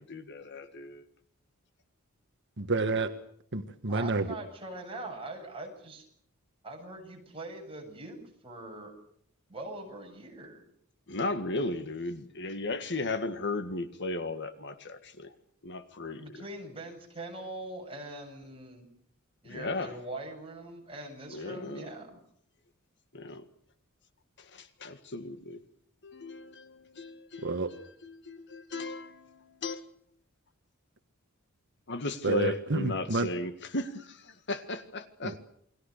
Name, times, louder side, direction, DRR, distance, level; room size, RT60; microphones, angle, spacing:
voice 1, 0.1-1.0 11.1-15.3 15.6-16.2 19.5-19.9 21.3-21.9 23.1-23.4 24.5-25.6 26.0-29.8 31.9-35.3, left 2 dB, 55° left, 10 dB, 1.8 m, -36 dB
voice 2, 2.6-3.1 3.5-4.3 27.4-27.7 32.2-33.3 35.2-35.4, right 3 dB, 55° right, 7 dB, 1.4 m, -29 dB
voice 3, 3.9-6.1 6.6-8.2 8.4-8.9 9.5-10.6 16.2-18.9 19.4-22.2, right 2 dB, 25° right, 1 dB, 7.7 m, -42 dB
29.0 x 22.0 x 6.7 m, 0.65 s
head